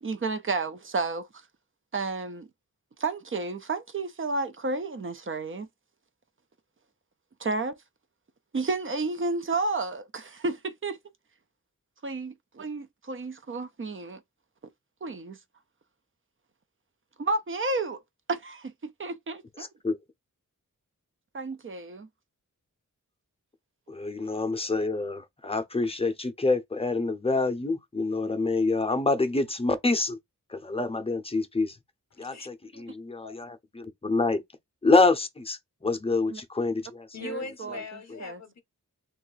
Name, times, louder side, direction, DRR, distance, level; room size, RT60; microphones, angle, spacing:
voice 1, 0.0-1.3 1.9-2.5 3.0-5.7 7.4-7.8 8.5-11.0 12.0-14.2 15.0-15.4 17.2-18.0 18.3-19.4 21.3-22.1 32.3-32.4 32.7-32.8 36.3-36.4 37.2-37.8 38.2-38.4, right 3 dB, 40° right, 0.5 m, -31 dB
voice 2, 19.6-20.0 23.9-30.2 30.5-31.8 32.2-34.4 34.8-37.1, left 3 dB, 20° left, 0.6 m, -27 dB
voice 3, 32.1-32.5 33.2-33.4 37.1-38.6, left 4 dB, 55° left, 0.8 m, -40 dB
2.6 x 2.4 x 4.0 m
wide cardioid pair, 85°, 33 cm